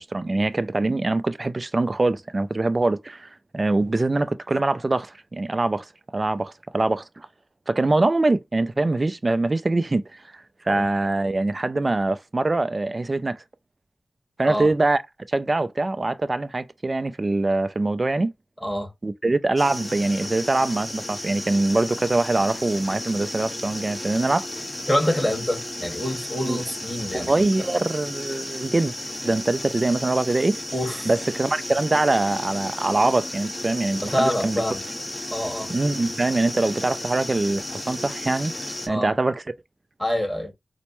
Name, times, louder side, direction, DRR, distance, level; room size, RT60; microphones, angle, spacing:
voice 1, 0.0-5.9 6.1-7.3 7.7-13.4 14.4-15.0 15.3-18.3 19.0-24.5 26.4-26.6 27.1-28.9 29.2-30.6 31.1-34.6 35.7-38.5 38.9-39.4, right 2 dB, 40° right, 0.3 m, -23 dB
sound 1, 19.6-38.9, left 1 dB, 25° left, 1.3 m, -34 dB
voice 2, 24.9-27.7 30.7-31.1 34.0-34.8 35.3-35.7 38.9-39.1 40.0-40.5, equal, 5° left, 1.6 m, -26 dB
4.3 x 2.1 x 3.0 m
cardioid pair, 45°, 0 cm